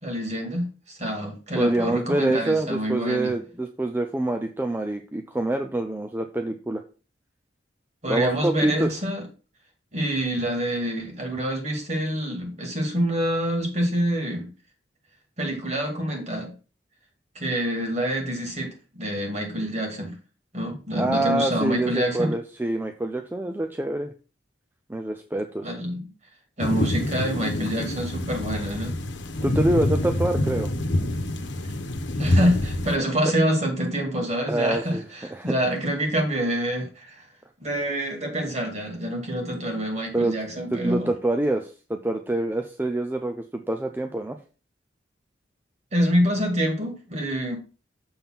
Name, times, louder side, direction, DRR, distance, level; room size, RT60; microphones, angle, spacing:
voice 1, 0.0-3.3 8.0-9.2 9.9-14.5 15.4-16.5 17.4-20.1 20.5-22.3 25.6-26.1 26.6-29.0 31.6-31.7 32.2-37.3 37.6-41.1 45.9-47.6, equal, 35° right, 2 dB, 2.2 m, -26 dB
voice 2, 1.6-6.8 8.1-8.9 20.9-24.1 24.9-25.7 29.4-30.7 33.3-33.4 34.5-35.1 35.3-35.6 40.1-40.3 40.7-44.4, right 2 dB, 10° right, 5 dB, 0.4 m, -26 dB
sound 1, 26.6-33.0, left 1 dB, 75° left, 1.1 m, -26 dB
7.0 x 3.7 x 5.8 m, 0.36 s
head